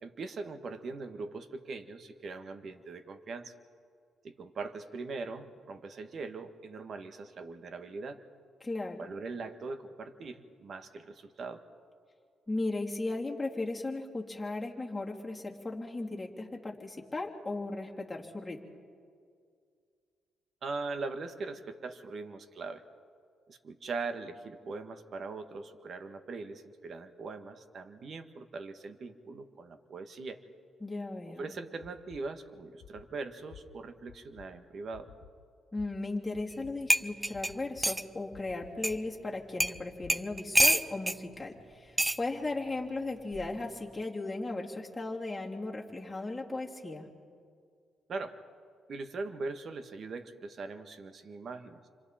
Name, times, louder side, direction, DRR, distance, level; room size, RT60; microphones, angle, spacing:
voice 1, 0.0-3.5 4.2-8.2 9.0-11.6 20.6-22.8 23.5-30.4 31.3-35.1 48.1-48.4 48.9-51.8, right 3 dB, 50° right, 8 dB, 1.6 m, -41 dB
voice 2, 8.6-9.1 12.5-18.6 30.8-31.4 35.7-47.1, left 2 dB, 15° left, -2 dB, 3.3 m, -36 dB
sound 1, 31.8-32.2 32.8-33.0 33.5-33.6 34.1-34.5 34.9-35.3 35.8-35.9 36.3-36.7 37.3-37.9 38.3-39.0 39.6-40.7, left 9 dB, 70° left, 1.5 m, -52 dB
sound 2, 36.5-36.6 36.9-38.1 38.8-38.9 39.6-39.8 40.1-41.2 42.0-42.2 43.3-43.6, right 1 dB, 10° right, 0.6 m, -27 dB
29.5 x 26.0 x 4.3 m, 2.2 s
cardioid pair, 90°, 0 cm